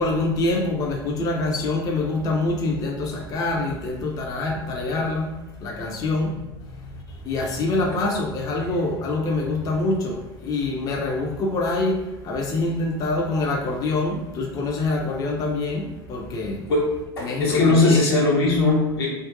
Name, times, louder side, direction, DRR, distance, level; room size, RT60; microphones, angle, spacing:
voice 1, 0.0-16.7 17.2-18.1, left 2 dB, 30° left, 0 dB, 0.4 m, -25 dB
voice 2, 16.7-19.1, left 2 dB, 75° left, -3 dB, 0.7 m, -20 dB
2.3 x 2.2 x 2.5 m, 1.1 s
figure-of-eight pair, 75°, 13 cm